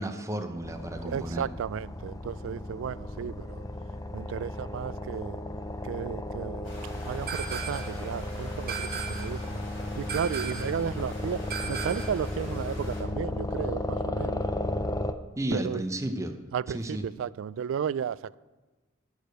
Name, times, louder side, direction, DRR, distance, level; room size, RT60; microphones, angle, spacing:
voice 1, 0.0-1.5 15.3-16.3 16.7-17.1, right 1 dB, 15° right, 0.7 m, -32 dB
sound 1, 0.6-15.1, left 1 dB, 20° left, 0.5 m, -34 dB
voice 2, 1.0-3.6 4.1-5.4 5.8-6.7 7.0-9.6 10.0-14.4 15.5-15.8 16.5-18.4, right 8 dB, 70° right, 0.3 m, -34 dB
sound 2, 6.6-13.0, left 1 dB, 60° left, 4.0 m, -46 dB
sound 3, 7.3-8.0 8.7-9.4 10.1-10.8 11.5-12.2, right 6 dB, 50° right, 1.4 m, -36 dB
10.0 x 6.6 x 7.8 m
head